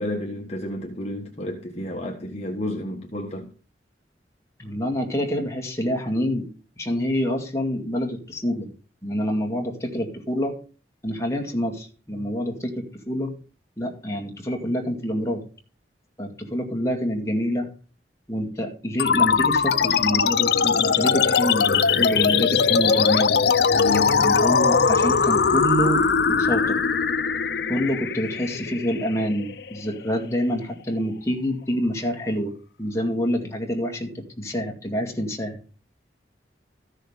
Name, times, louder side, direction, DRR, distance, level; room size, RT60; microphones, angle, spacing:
voice 1, 0.0-3.5 23.7-24.2, left 1 dB, 35° left, 1.4 m, -31 dB
voice 2, 4.6-6.5 6.8-8.7 9.0-10.6 11.0-13.3 13.8-15.4 16.2-17.7 18.3-23.4 24.1-26.8 27.7-35.6, equal, 15° left, 2.1 m, -27 dB
sound 1, 19.0-29.9, left 6 dB, 60° left, 0.6 m, -20 dB
14.0 x 6.6 x 5.0 m
head